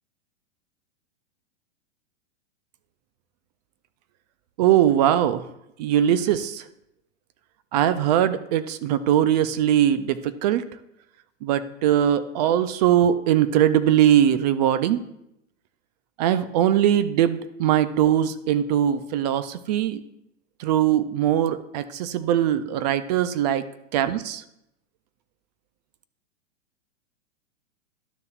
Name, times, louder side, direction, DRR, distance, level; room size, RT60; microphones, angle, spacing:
voice 1, 4.6-5.5 5.8-6.6 7.7-10.6 11.4-15.0 16.2-20.0 20.6-23.6 23.9-24.4, right 10 dB, 35° right, 13 dB, 0.4 m, -21 dB
12.0 x 6.6 x 2.4 m, 0.79 s
hypercardioid pair, 120°, 37 cm